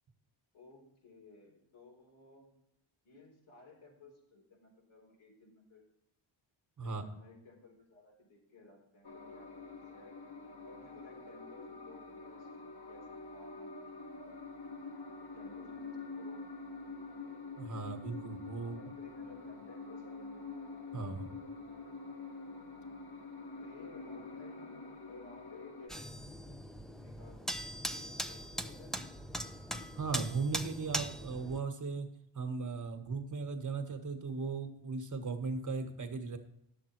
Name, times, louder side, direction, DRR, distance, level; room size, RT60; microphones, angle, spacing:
voice 1, 0.5-2.5 3.0-5.8 6.8-9.6 9.9-10.2 10.7-14.4 15.3-16.9 18.6-20.2 22.7-23.1 23.6-27.4 27.9-29.0, left 3 dB, 85° left, -1 dB, 4.1 m, -58 dB
sound 1, 9.0-25.9, left 3 dB, 50° left, 1.8 m, -46 dB
voice 2, 17.2-18.8 20.9-21.4 29.9-36.4, right 4 dB, 40° right, 5 dB, 1.4 m, -38 dB
sound 2, 25.9-31.6, equal, ahead, 0.7 m, -40 dB
10.5 x 7.5 x 4.5 m, 0.79 s
cardioid pair, 80°, 48 cm